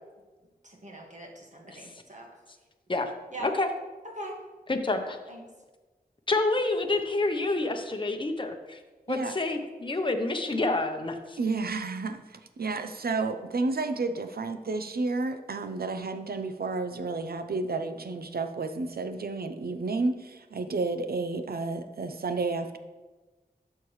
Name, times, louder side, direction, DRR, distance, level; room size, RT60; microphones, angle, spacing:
voice 1, 0.6-2.3 3.3-3.5 4.0-4.4 5.3-5.4, right 1 dB, 50° right, 0 dB, 1.8 m, -42 dB
voice 2, 4.7-5.2 6.3-8.8 9.1-11.4, left 2 dB, 30° left, 4 dB, 0.8 m, -28 dB
voice 3, 11.4-22.8, right 3 dB, 70° right, 9 dB, 0.7 m, -31 dB
12.0 x 6.6 x 3.2 m, 1.2 s
wide cardioid pair, 75°, 16 cm